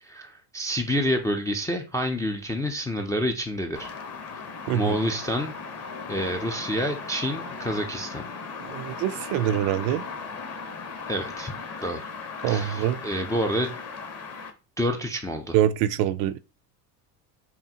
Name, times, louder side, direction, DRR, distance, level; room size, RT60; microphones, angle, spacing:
voice 1, 0.0-3.9 4.3-4.4 4.7-5.5 6.1-8.2 11.1-11.5 11.8-12.1 12.5-13.8 14.8-15.6, equal, 10° left, 0.3 m, -28 dB
sound 1, 3.7-14.5, left 5 dB, 30° left, 1.0 m, -37 dB
voice 2, 4.7-5.0 8.7-10.0 12.4-13.0 15.5-16.4, right 11 dB, 60° right, 0.5 m, -24 dB
5.7 x 2.2 x 2.8 m
hypercardioid pair, 90°, 50 cm